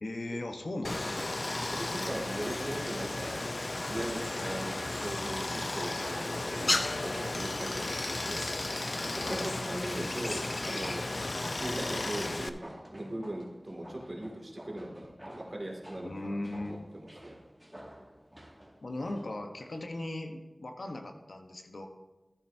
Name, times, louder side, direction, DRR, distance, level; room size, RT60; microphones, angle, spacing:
voice 1, 0.0-1.4 9.2-9.5 16.0-16.9 18.8-21.9, left 1 dB, 70° left, 4 dB, 1.0 m, -38 dB
Stream, 0.8-12.5, left 2 dB, 55° left, 0.5 m, -34 dB
sound 1, 1.0-19.9 20.2-20.3, equal, 10° right, 2.0 m, -52 dB
voice 2, 1.5-3.4 3.9-8.5 9.0-11.0 11.5-17.4, right 1 dB, 45° right, -1 dB, 2.2 m, -39 dB
14.0 x 8.9 x 2.7 m, 1.1 s
wide cardioid pair, 50°, 0 cm